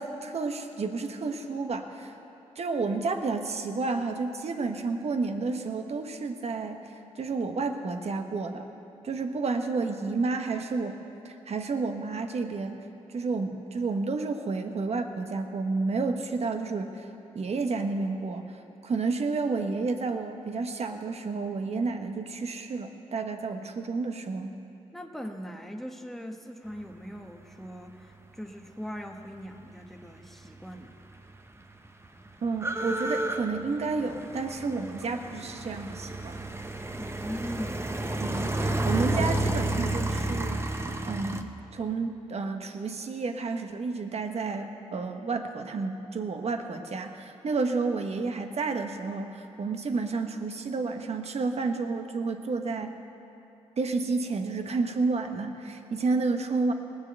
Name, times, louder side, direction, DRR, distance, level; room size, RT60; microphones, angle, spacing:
voice 1, 0.0-2.1 2.6-6.8 7.2-8.6 9.0-11.0 11.2-12.8 13.1-17.1 17.3-18.5 18.8-24.5 32.4-36.4 38.2-40.8 41.1-53.0 53.8-56.7, right 4 dB, 60° right, 6 dB, 1.1 m, -31 dB
voice 2, 24.9-30.9 37.0-38.0, equal, ahead, 3 dB, 1.2 m, -40 dB
sound 1, 30.8-30.9 31.0-41.4, right 1 dB, 20° right, 0.9 m, -31 dB
18.5 x 6.8 x 7.9 m, 3.0 s
cardioid pair, 60°, 12 cm